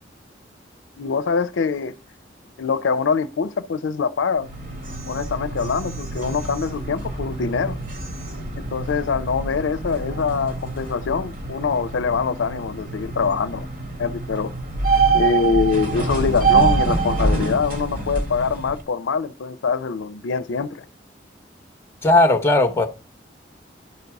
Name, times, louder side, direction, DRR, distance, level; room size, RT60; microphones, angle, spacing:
voice 1, 1.0-1.9 2.6-4.5 5.1-7.8 8.6-13.7 14.0-14.5 15.1-20.8, left 5 dB, 90° left, 0.5 m, -24 dB
sound 1, 4.4-18.8, right 4 dB, 50° right, 1.4 m, -25 dB
voice 2, 22.0-22.9, left 2 dB, 15° left, 0.7 m, -16 dB
10.5 x 4.0 x 4.6 m
head